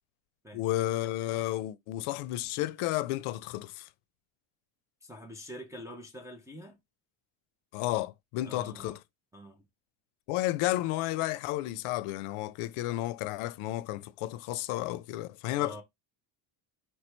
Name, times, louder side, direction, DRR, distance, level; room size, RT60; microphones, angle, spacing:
voice 1, 0.5-3.9 7.7-9.0 10.3-15.8, left 16 dB, 80° left, 0.6 m, -32 dB
voice 2, 5.0-6.8 8.4-9.0 9.3-9.7 15.6-15.8, equal, 5° right, 0.3 m, -45 dB
4.5 x 3.0 x 3.2 m
cardioid pair, 165°, 50 cm